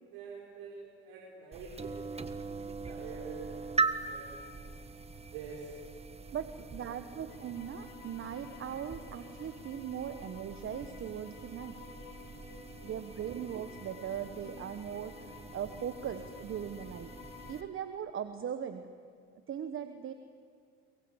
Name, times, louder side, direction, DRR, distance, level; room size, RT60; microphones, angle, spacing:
voice 1, 0.1-4.8 5.3-5.7 6.3-6.4 7.1-7.4, right 5 dB, 80° right, -3 dB, 4.8 m, -47 dB
sound 1, 1.5-17.6, right 4 dB, 20° right, 1.4 m, -41 dB
voice 2, 6.3-11.8 12.8-17.1 17.5-18.9 19.5-20.1, right 9 dB, 40° right, 9 dB, 1.3 m, -39 dB
sound 2, 7.3-17.7, left 7 dB, 75° left, 2.7 m, -52 dB
23.5 x 22.5 x 8.2 m, 2.2 s
supercardioid pair, 90°, 32 cm